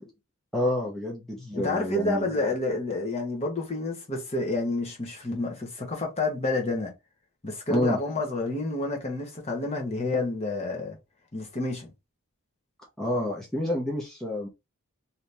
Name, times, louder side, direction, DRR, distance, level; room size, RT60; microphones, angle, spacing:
voice 1, 0.5-2.3 7.7-8.0 13.0-14.5, left 1 dB, ahead, 0.6 m, -28 dB
voice 2, 1.5-6.9 7.4-11.0 11.3-11.9, left 2 dB, 30° left, 1.0 m, -29 dB
2.8 x 2.7 x 3.3 m
head